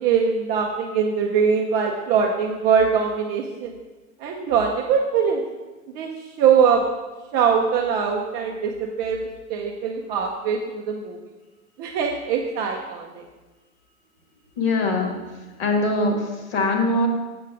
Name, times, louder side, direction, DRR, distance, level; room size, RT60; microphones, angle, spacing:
voice 1, 0.0-3.8 4.2-5.4 5.9-6.8 7.3-11.2 11.8-13.3, right 6 dB, 25° right, 1 dB, 0.4 m, -22 dB
voice 2, 14.6-17.1, left 2 dB, 45° left, 3 dB, 1.6 m, -23 dB
7.6 x 6.4 x 3.5 m, 1.2 s
hypercardioid pair, 110°, 42 cm